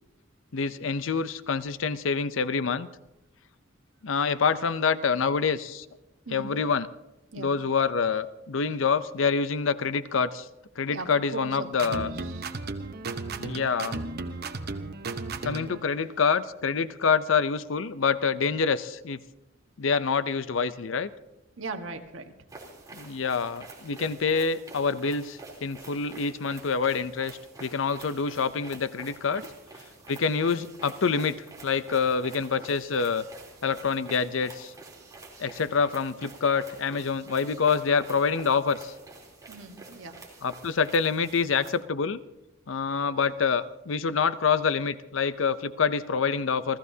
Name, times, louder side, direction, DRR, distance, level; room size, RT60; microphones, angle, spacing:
voice 1, 0.5-2.9 4.0-5.9 6.3-6.9 7.4-10.5 10.8-12.1 13.4-14.0 15.4-19.2 19.8-21.1 22.9-29.4 30.1-33.3 33.6-34.7 35.4-38.9 40.4-42.2 42.7-46.8, left 5 dB, 70° left, 14 dB, 0.6 m, -26 dB
voice 2, 6.2-6.6 7.3-7.6 10.9-11.6 11.9-12.6 21.6-22.3 29.4-29.5 39.5-40.2, right 3 dB, 75° right, 5 dB, 1.4 m, -39 dB
sound 1, 11.7-15.8, right 3 dB, 55° right, 1.0 m, -34 dB
sound 2, 22.5-41.7, right 3 dB, 20° right, 3.3 m, -48 dB
30.0 x 14.0 x 2.8 m, 0.96 s
head